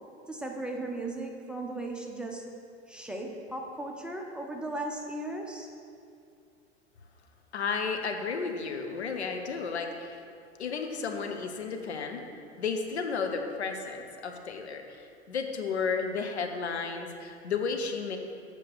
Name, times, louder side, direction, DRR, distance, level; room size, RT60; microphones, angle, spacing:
voice 1, 0.3-2.5 2.9-5.7, right 2 dB, 5° right, 0 dB, 0.9 m, -36 dB
voice 2, 7.5-10.2 10.6-12.2 12.6-18.2, left 5 dB, 70° left, 4 dB, 1.0 m, -33 dB
8.3 x 6.6 x 6.9 m, 2.4 s
figure-of-eight pair, 85°, 34 cm